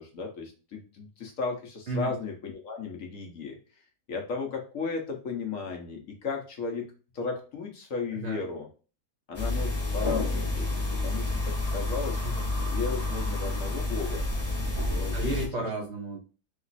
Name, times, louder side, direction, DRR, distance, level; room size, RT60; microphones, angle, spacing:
voice 1, 0.0-3.6 4.1-8.7 9.3-10.7 11.0-12.2 12.6-14.3 14.9-15.4, left 4 dB, 60° left, 1 dB, 1.2 m, -35 dB
sound 1, 9.3-15.5, left 2 dB, 30° left, 0.9 m, -29 dB
voice 2, 14.9-16.2, right 2 dB, 50° right, 0 dB, 1.1 m, -33 dB
3.6 x 3.0 x 4.1 m, 0.35 s
omnidirectional pair, 1.7 m